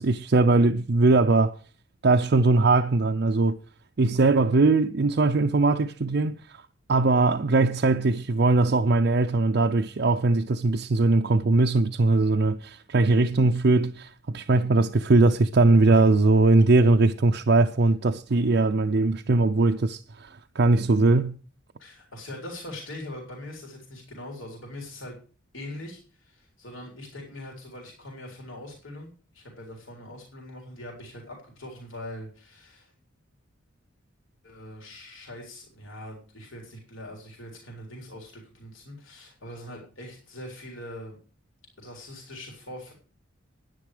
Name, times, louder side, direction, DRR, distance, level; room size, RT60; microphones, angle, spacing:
voice 1, 0.0-1.6 2.0-3.6 4.0-6.6 6.9-21.4, right 3 dB, 55° right, 0.5 m, -21 dB
voice 2, 21.8-25.2 25.5-32.9 34.4-41.2 41.8-42.9, left 1 dB, 70° left, 3.8 m, -42 dB
10.5 x 10.0 x 4.9 m
head